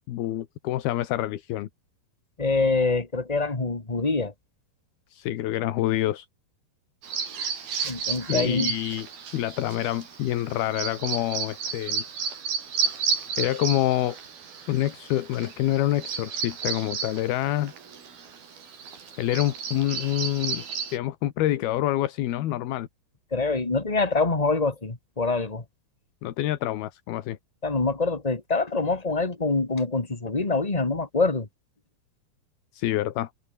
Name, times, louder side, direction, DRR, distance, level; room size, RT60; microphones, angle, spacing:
voice 1, 0.1-1.7 5.1-6.3 8.2-12.0 13.4-14.2 14.7-17.7 19.2-20.6 20.9-22.9 26.2-27.4 32.7-33.3, left 13 dB, 75° left, 3.3 m, -27 dB
voice 2, 2.4-4.3 7.8-8.7 23.3-25.6 27.6-31.5, left 3 dB, 20° left, 1.1 m, -25 dB
Bird vocalization bird call bird song, 7.0-21.0, right 6 dB, 70° right, 6.0 m, -33 dB
omnidirectional pair, 4.5 m